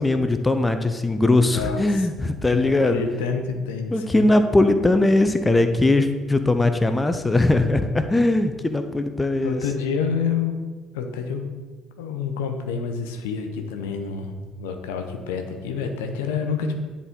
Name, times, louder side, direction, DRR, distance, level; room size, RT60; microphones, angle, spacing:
voice 1, 0.0-3.0 3.9-9.6, left 2 dB, 15° left, 8 dB, 0.6 m, -20 dB
voice 2, 1.4-2.1 2.5-4.3 9.4-10.5 10.9-11.4 12.0-16.7, left 6 dB, 75° left, 5 dB, 0.7 m, -28 dB
10.0 x 4.1 x 3.7 m, 1.4 s
figure-of-eight pair, 50°, 0 cm